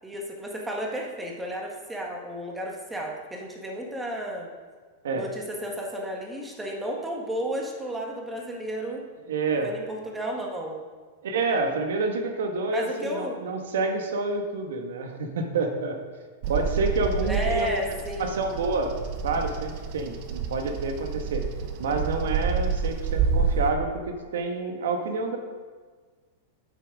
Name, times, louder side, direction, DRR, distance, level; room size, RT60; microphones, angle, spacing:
voice 1, 0.0-4.5 5.1-9.0 9.6-10.8 12.7-13.4 17.2-18.5, equal, 10° right, -1 dB, 1.7 m, -33 dB
voice 2, 9.2-9.7 11.2-16.0 16.5-17.7 18.2-18.9 19.2-21.5 21.8-25.4, right 3 dB, 85° right, 4 dB, 1.5 m, -28 dB
Bird vocalization bird call bird song, 16.4-23.7, right 5 dB, 50° right, 1.1 m, -28 dB
8.9 x 7.8 x 4.8 m, 1.5 s
supercardioid pair, 135°, 0 cm